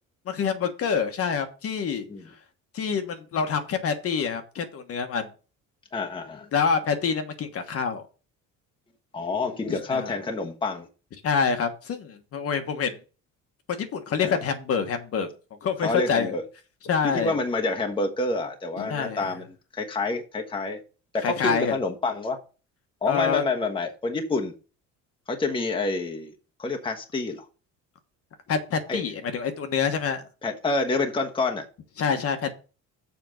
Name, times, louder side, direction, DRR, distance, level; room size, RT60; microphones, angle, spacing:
voice 1, 0.3-2.1 2.7-5.3 6.5-8.0 9.7-10.1 11.2-13.0 13.7-15.3 15.6-16.3 16.8-17.3 18.8-19.2 21.2-21.7 23.1-23.4 28.5-30.2 32.0-32.6, left 6 dB, 50° left, 1.3 m, -26 dB
voice 2, 5.9-6.5 9.1-10.9 14.2-14.4 15.8-16.4 17.0-19.5 19.7-20.8 21.1-22.4 23.0-24.5 25.3-26.3 26.6-27.4 28.9-29.0 30.4-31.6, left 3 dB, 15° left, 1.2 m, -28 dB
7.2 x 5.1 x 6.3 m
cardioid pair, 130°, 31 cm